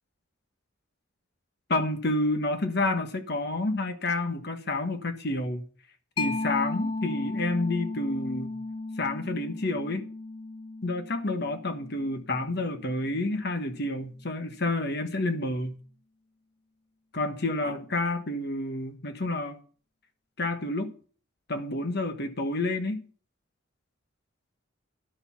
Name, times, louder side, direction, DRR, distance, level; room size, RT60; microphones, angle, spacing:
voice 1, 1.7-5.7 6.2-8.6 9.0-10.0 10.8-15.8 17.1-19.6 20.4-21.0 21.5-23.1, left 2 dB, 50° left, 1.3 m, -29 dB
Mallet percussion, 6.2-13.4, left 3 dB, 25° left, 0.5 m, -35 dB
11.5 x 6.8 x 5.7 m
head